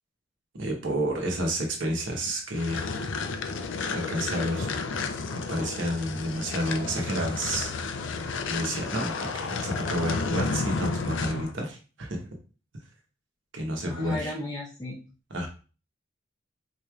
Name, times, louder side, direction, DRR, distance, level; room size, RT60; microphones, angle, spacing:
voice 1, 0.6-3.1 3.8-4.8 5.3-7.7 8.5-12.3 13.5-14.3 15.3-15.5, equal, 70° right, 1 dB, 1.0 m, -30 dB
sound 1, 2.5-11.5, left 4 dB, 70° left, 0.5 m, -32 dB
voice 2, 13.8-15.0, left 1 dB, 20° left, -5 dB, 0.6 m, -35 dB
4.1 x 3.2 x 2.3 m, 0.36 s
head